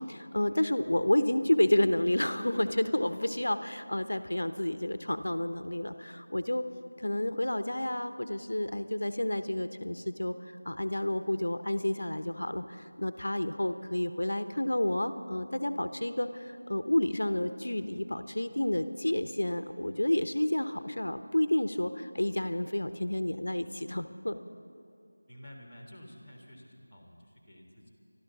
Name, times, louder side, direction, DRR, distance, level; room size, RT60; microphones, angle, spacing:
voice 1, 0.1-6.6 7.0-10.3 10.6-24.4, left 1 dB, 85° left, 10 dB, 0.9 m, -30 dB
voice 2, 25.3-27.9, equal, ahead, -18 dB, 1.9 m, -51 dB
25.5 x 12.5 x 4.0 m, 2.7 s
figure-of-eight pair, 175°, 0 cm